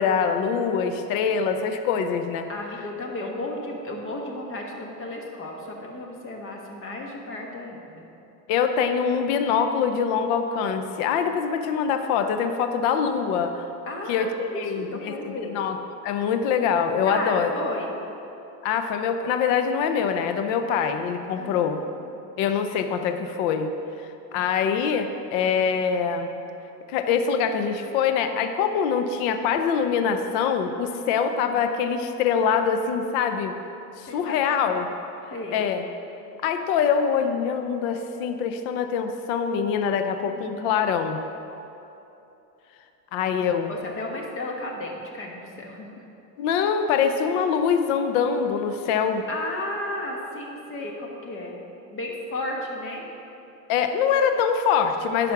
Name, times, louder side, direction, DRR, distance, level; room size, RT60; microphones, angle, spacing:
voice 1, 0.0-2.5 8.5-13.7 14.1-15.8 16.0-17.5 18.6-21.8 22.4-23.7 24.3-26.3 26.9-33.5 34.0-34.9 35.5-35.8 36.4-41.2 43.1-43.7 46.4-49.2 53.7-55.3, left 7 dB, 50° left, 7 dB, 0.7 m, -24 dB
voice 2, 2.5-8.1 13.9-15.6 17.0-17.9 21.4-22.0 34.1-34.8 35.3-35.6 40.4-40.6 43.7-46.0 49.3-51.6 51.9-53.0, left 1 dB, 25° left, 0 dB, 1.3 m, -34 dB
10.5 x 5.2 x 6.0 m, 2.9 s
supercardioid pair, 140°, 50 cm